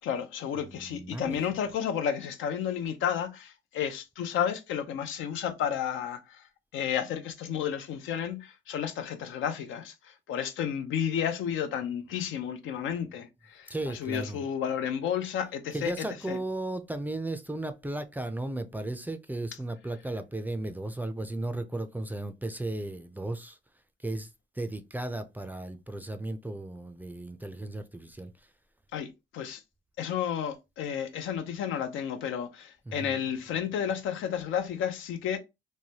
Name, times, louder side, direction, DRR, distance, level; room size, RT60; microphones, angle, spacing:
voice 1, 0.0-6.4 6.7-16.4 28.9-29.6 30.0-35.4, left 8 dB, 80° left, 0.6 m, -32 dB
voice 2, 0.6-1.5 13.7-14.4 15.7-23.6 24.0-24.3 24.6-28.3 32.9-33.2, right 2 dB, 10° right, 0.4 m, -35 dB
3.1 x 2.2 x 2.7 m
cardioid pair, 90°, 20 cm